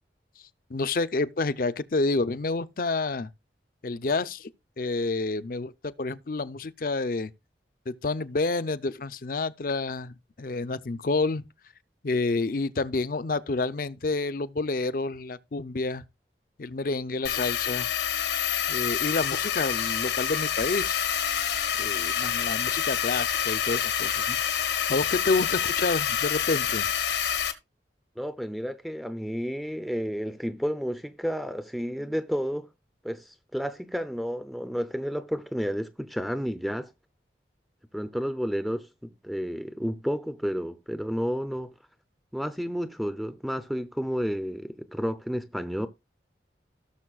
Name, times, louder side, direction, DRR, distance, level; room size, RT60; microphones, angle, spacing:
voice 1, 0.7-3.3 3.8-4.5 4.8-7.3 7.9-11.4 12.0-16.0 16.6-17.9 18.7-21.1 21.8-26.9, left 3 dB, 50° left, 0.6 m, -29 dB
sound 1, 17.2-27.5, left 8 dB, 80° left, 1.3 m, -27 dB
voice 2, 28.2-32.7 33.0-36.9 37.9-41.7 42.3-45.9, equal, ahead, 0.5 m, -31 dB
17.0 x 6.8 x 2.4 m
head